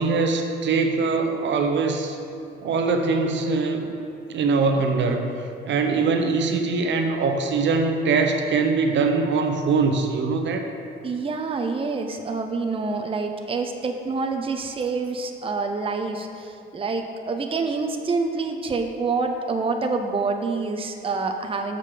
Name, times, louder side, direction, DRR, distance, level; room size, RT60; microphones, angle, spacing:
voice 1, 0.0-2.2 2.6-3.9 4.3-5.3 5.6-10.7, right 4 dB, 65° right, 5 dB, 0.8 m, -22 dB
voice 2, 11.0-21.8, right 4 dB, 25° right, 4 dB, 0.7 m, -27 dB
7.3 x 5.2 x 6.6 m, 2.5 s
cardioid pair, 90°, 20 cm